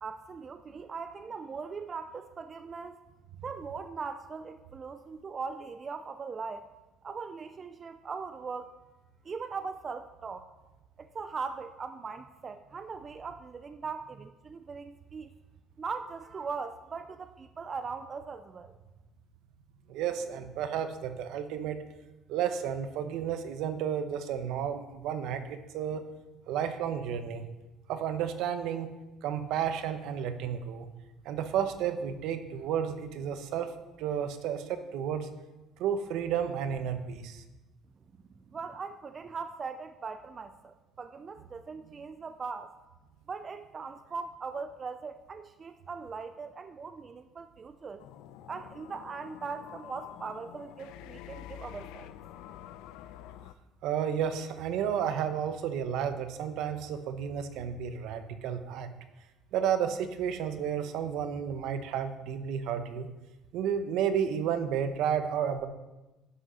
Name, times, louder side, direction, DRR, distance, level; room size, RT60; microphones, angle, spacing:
voice 1, 0.0-3.0 3.4-6.7 7.0-8.7 9.2-10.5 11.0-15.3 15.8-18.7 38.5-42.7 43.3-48.0 48.5-52.1, right 5 dB, 20° right, 9 dB, 0.3 m, -40 dB
voice 2, 19.9-21.8 22.3-26.0 26.5-27.4 27.9-28.9 29.2-30.9 31.2-33.7 34.0-35.3 35.8-37.4 53.8-58.9 59.5-63.1 63.5-65.7, right 8 dB, 60° right, 9 dB, 0.9 m, -32 dB
sound 1, 48.0-53.5, left 12 dB, 85° left, 0.5 m, -47 dB
11.0 x 6.3 x 5.6 m, 1.1 s
cardioid pair, 180°, 0 cm